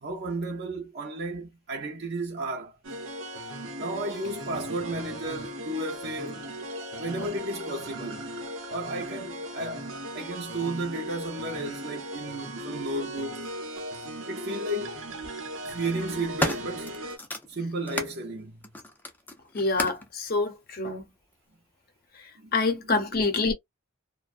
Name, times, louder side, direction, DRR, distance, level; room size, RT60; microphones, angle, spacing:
voice 1, 0.0-2.8 3.8-6.5 7.0-8.3 8.7-13.5 14.3-15.0 15.6-17.0 17.5-18.7 22.4-23.2, right 2 dB, 55° right, 0.6 m, -33 dB
sound 1, 2.8-17.2, right 1 dB, 90° right, 0.8 m, -38 dB
sound 2, 13.8-13.9 15.0-15.3 15.9-18.2 18.6-20.1 21.0-21.1, left 1 dB, 10° left, 0.4 m, -34 dB
voice 2, 19.5-21.1 22.5-23.5, left 3 dB, 50° left, 0.7 m, -26 dB
2.5 x 2.1 x 2.4 m
head